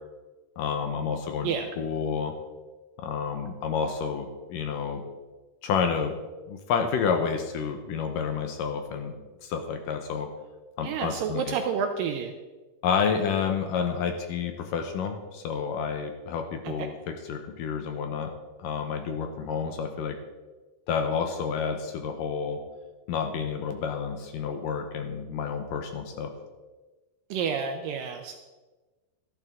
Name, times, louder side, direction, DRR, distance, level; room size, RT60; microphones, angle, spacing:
voice 1, 0.6-1.5 1.8-2.3 3.0-5.0 5.6-6.2 6.5-9.1 9.4-10.3 10.8-11.5 12.8-16.9 17.3-18.3 18.6-20.2 20.9-22.6 23.1-26.3, left 6 dB, 70° left, 5 dB, 2.2 m, -29 dB
voice 2, 10.8-12.3 16.6-16.9 27.3-28.4, right 6 dB, 80° right, 5 dB, 2.1 m, -29 dB
13.0 x 12.0 x 3.6 m, 1.2 s
omnidirectional pair, 4.6 m